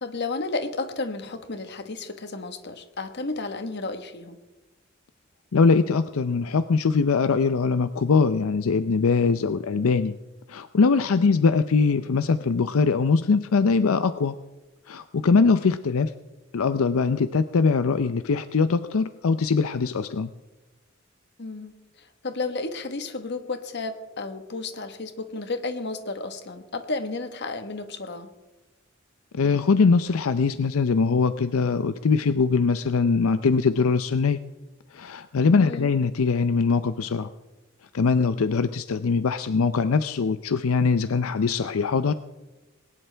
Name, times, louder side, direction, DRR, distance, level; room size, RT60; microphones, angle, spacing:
voice 1, 0.0-4.4 11.2-11.3 21.4-21.7 22.2-28.3 35.6-35.9, left 3 dB, 55° left, 8 dB, 1.3 m, -32 dB
voice 2, 5.5-10.1 10.5-14.3 14.9-16.1 16.5-20.3 29.3-34.4 34.9-37.3 37.9-42.1, left 4 dB, 85° left, 12 dB, 0.5 m, -22 dB
20.5 x 18.5 x 3.4 m, 1.1 s
head